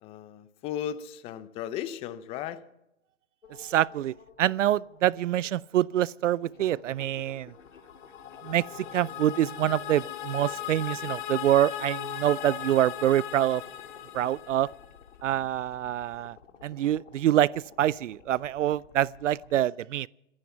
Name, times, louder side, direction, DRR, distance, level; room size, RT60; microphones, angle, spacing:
voice 1, 0.0-2.6, left 10 dB, 15° left, 0.6 m, -36 dB
sound 1, 3.4-19.5, left 6 dB, 75° left, 2.4 m, -50 dB
voice 2, 3.6-7.5 8.4-8.6 8.9-13.6 14.1-14.7 15.2-16.4 16.6-17.5 17.8-20.1, right 12 dB, 75° right, 0.5 m, -26 dB
sound 2, 7.9-15.0, left 12 dB, 40° left, 1.8 m, -38 dB
25.5 x 9.8 x 5.7 m
hypercardioid pair, 140°, 37 cm